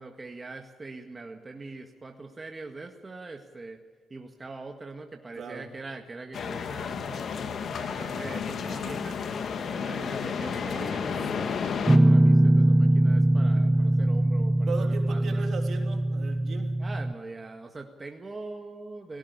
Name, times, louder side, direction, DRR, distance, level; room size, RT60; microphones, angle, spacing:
voice 1, 0.0-3.8 4.1-7.2 7.7-9.2 9.7-15.5 16.8-19.2, right 3 dB, 30° right, 3 dB, 1.8 m, -42 dB
voice 2, 5.3-5.7 7.0-7.2 13.6-13.9 14.7-16.8, right 5 dB, 60° right, 4 dB, 3.2 m, -38 dB
sound 1, 6.3-12.0, left 6 dB, 60° left, 1.6 m, -32 dB
Guitar, 11.9-17.1, right 1 dB, 15° right, 0.8 m, -22 dB
18.0 x 17.5 x 8.4 m, 1.5 s
supercardioid pair, 55°, 0 cm